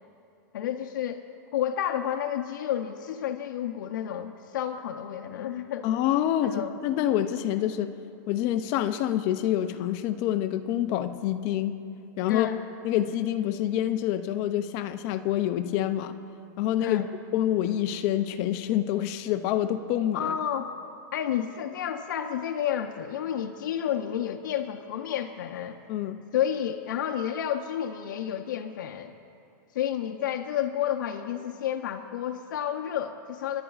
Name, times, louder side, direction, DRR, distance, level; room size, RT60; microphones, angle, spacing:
voice 1, 0.5-1.2 1.5-5.9 6.4-6.8 12.3-12.6 16.8-17.1 20.1-20.7 21.1-25.8 26.3-29.1 29.7-33.6, left 10 dB, 80° left, 4 dB, 0.5 m, -30 dB
voice 2, 5.8-6.6 6.8-8.0 8.3-11.8 12.2-12.5 12.8-16.1 16.6-17.1 17.3-20.3 25.9-26.2, left 12 dB, 25° left, 11 dB, 0.3 m, -27 dB
27.0 x 11.0 x 2.4 m, 2.6 s
supercardioid pair, 175°, 10 cm